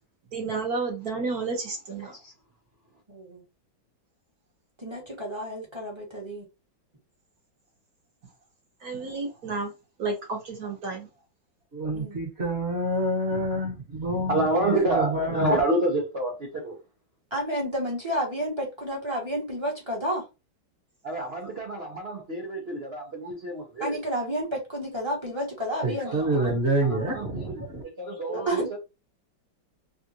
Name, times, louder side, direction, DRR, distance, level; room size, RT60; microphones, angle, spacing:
voice 1, 0.3-2.2 8.8-9.7 10.0-11.1 28.3-28.4, right 4 dB, 55° right, 1.3 m, -31 dB
voice 2, 3.1-3.4 4.8-6.5 11.9-12.2 17.3-20.2 23.8-26.2 28.3-28.8, equal, 20° right, 0.8 m, -31 dB
voice 3, 11.7-15.6 25.8-27.8, right 1 dB, 35° right, 1.3 m, -27 dB
voice 4, 14.3-16.8 21.0-24.0 25.8-28.8, right 2 dB, 85° right, 0.5 m, -29 dB
3.5 x 2.4 x 2.7 m
omnidirectional pair, 2.2 m